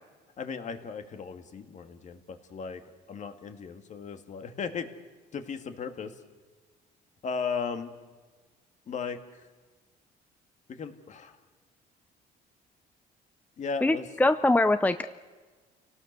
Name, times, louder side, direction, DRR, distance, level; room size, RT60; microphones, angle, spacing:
voice 1, 0.4-2.8 3.1-4.9 5.3-6.1 7.2-7.9 8.9-9.5 10.7-11.4 13.6-14.1, left 5 dB, 45° left, 7 dB, 2.2 m, -36 dB
voice 2, 13.8-15.1, left 2 dB, 10° left, 11 dB, 0.7 m, -23 dB
29.5 x 18.5 x 6.9 m, 1.4 s
cardioid pair, 110°, 17 cm